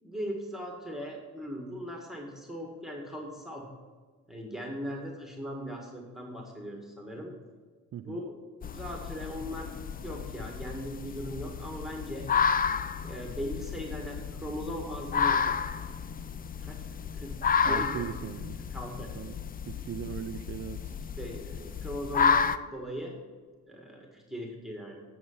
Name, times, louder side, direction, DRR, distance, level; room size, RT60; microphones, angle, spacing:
voice 1, 0.0-3.7 4.3-7.3 8.0-8.2 8.6-9.7 10.0-12.3 13.0-15.7 16.6-16.8 17.1-18.1 18.6-19.1 21.2-23.2 23.7-25.0, equal, ahead, 0 dB, 1.8 m, -39 dB
sound 1, 8.6-22.6, left 6 dB, 30° left, 0.4 m, -31 dB
voice 2, 17.6-18.6 19.1-19.3 19.7-20.9, right 10 dB, 45° right, 9 dB, 0.4 m, -38 dB
9.5 x 6.7 x 5.5 m, 1.5 s
cardioid pair, 90°, 30 cm